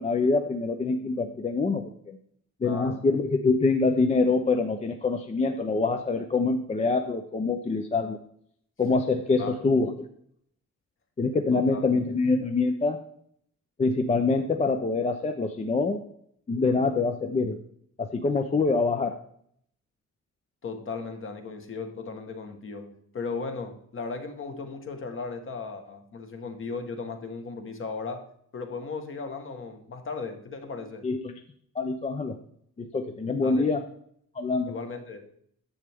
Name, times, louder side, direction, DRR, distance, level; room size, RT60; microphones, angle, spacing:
voice 1, 0.0-2.2 2.6-8.2 8.8-9.9 11.2-13.0 13.8-16.0 16.5-17.6 18.0-19.1 31.0-31.3 31.8-32.3 32.8-33.8 34.4-34.7, left 3 dB, 20° left, 5 dB, 0.5 m, -25 dB
voice 2, 2.6-3.0 9.4-9.7 11.5-11.9 20.6-28.2 28.5-31.1 33.4-33.7 34.7-35.2, left 4 dB, 40° left, 5 dB, 1.2 m, -36 dB
10.0 x 7.6 x 3.5 m, 0.67 s
wide cardioid pair, 170°, 31 cm